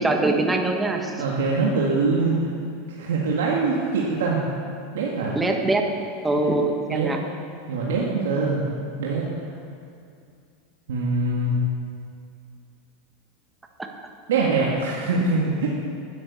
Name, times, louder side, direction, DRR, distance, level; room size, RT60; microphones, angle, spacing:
voice 1, 0.0-1.2 5.3-5.8 6.2-7.2 13.8-13.9, right 2 dB, 10° right, 3 dB, 1.4 m, -23 dB
voice 2, 1.2-2.5 3.0-4.4 4.9-5.4 6.9-7.1 7.7-8.6 9.0-9.3 10.9-11.5 14.3-15.7, right 3 dB, 90° right, -4 dB, 1.8 m, -23 dB
10.5 x 10.5 x 7.0 m, 2.3 s
supercardioid pair, 125°, 0 cm